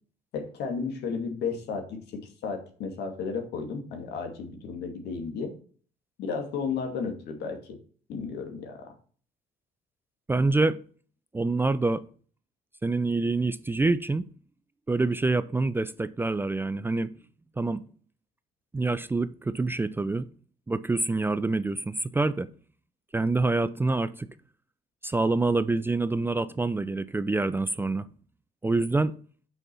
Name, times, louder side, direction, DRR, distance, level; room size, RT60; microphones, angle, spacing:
voice 1, 0.3-5.5 6.2-7.8 8.1-8.9, left 5 dB, 75° left, 2.2 m, -33 dB
voice 2, 10.3-10.8 11.3-12.0 12.8-14.3 14.9-17.1 17.6-17.8 18.7-20.3 20.7-22.5 23.1-24.3 25.0-28.1 28.6-29.2, right 3 dB, 15° right, 0.4 m, -26 dB
6.2 x 5.4 x 6.8 m
cardioid pair, 110°, 17 cm